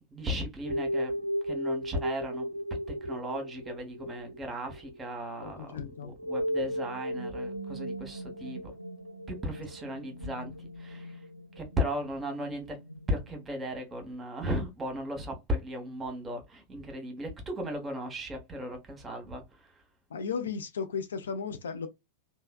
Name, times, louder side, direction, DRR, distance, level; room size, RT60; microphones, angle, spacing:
voice 1, 0.1-1.1 1.4-2.5 3.0-8.7 9.3-11.2 11.6-12.8 13.1-19.4, equal, 15° right, 1.0 m, -36 dB
sound 1, 0.7-13.8, equal, 90° right, 0.4 m, -37 dB
voice 2, 5.4-6.1 20.1-21.9, left 6 dB, 65° left, 0.4 m, -35 dB
3.2 x 2.2 x 2.3 m
figure-of-eight pair, 90°, 0 cm